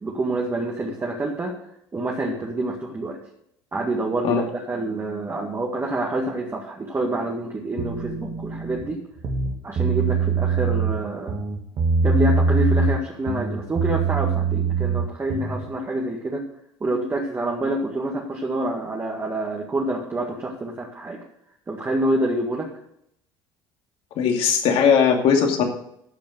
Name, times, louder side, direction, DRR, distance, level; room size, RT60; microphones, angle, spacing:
voice 1, 0.0-1.6 1.9-3.2 3.7-9.0 9.6-11.4 12.0-16.4 16.8-21.2 21.7-22.7, right 2 dB, 25° right, -1 dB, 2.0 m, -27 dB
sound 1, 7.8-8.8 9.2-11.0 11.3-13.0 13.3-15.6, right 4 dB, 50° right, 2.0 m, -23 dB
voice 2, 24.2-25.6, left 7 dB, 60° left, 3 dB, 2.3 m, -19 dB
14.5 x 5.2 x 6.3 m, 0.75 s
supercardioid pair, 85°, 11 cm